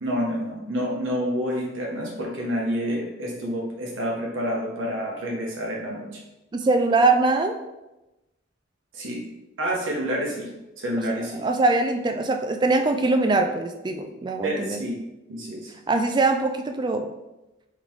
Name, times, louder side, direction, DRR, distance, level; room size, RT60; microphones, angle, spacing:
voice 1, 0.0-6.2 8.9-9.2 9.6-10.5 10.8-11.5 14.4-15.0 15.3-15.7, equal, 80° right, -1 dB, 1.0 m, -28 dB
voice 2, 6.5-7.6 11.4-14.8 15.9-17.1, right 3 dB, 20° right, 6 dB, 0.3 m, -22 dB
3.7 x 3.4 x 3.1 m, 0.99 s
head